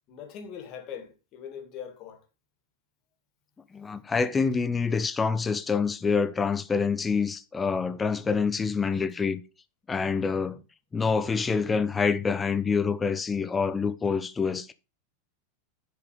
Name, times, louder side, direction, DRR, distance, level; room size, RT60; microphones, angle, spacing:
voice 1, 0.1-2.2, left 8 dB, 40° left, 2.3 m, -41 dB
voice 2, 3.7-9.4 9.9-10.6 10.9-14.7, left 5 dB, 15° left, 0.9 m, -26 dB
10.5 x 5.1 x 4.9 m
figure-of-eight pair, 90°, 0 cm